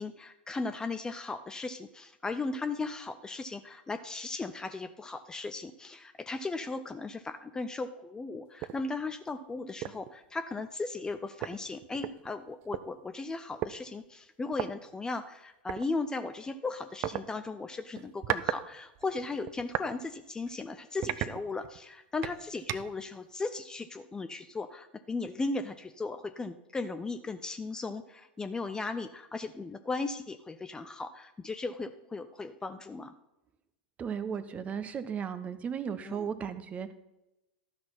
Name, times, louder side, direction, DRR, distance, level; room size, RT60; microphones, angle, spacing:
voice 1, 0.0-33.1 36.1-36.3, left 3 dB, 10° left, 9 dB, 0.5 m, -37 dB
sound 1, 8.6-8.8 9.3-9.4 9.8-10.1 11.1-11.2 11.4-12.8 13.6-13.7 14.5-14.7 15.7-15.8 17.0-17.2 17.9-18.6 18.9-19.9 20.4-20.5 21.0-21.8 22.2-23.0, right 13 dB, 40° right, 0.5 m, -35 dB
voice 2, 34.0-36.9, right 7 dB, 25° right, 12 dB, 0.9 m, -35 dB
12.5 x 6.1 x 5.8 m, 0.91 s
figure-of-eight pair, 90°, 6 cm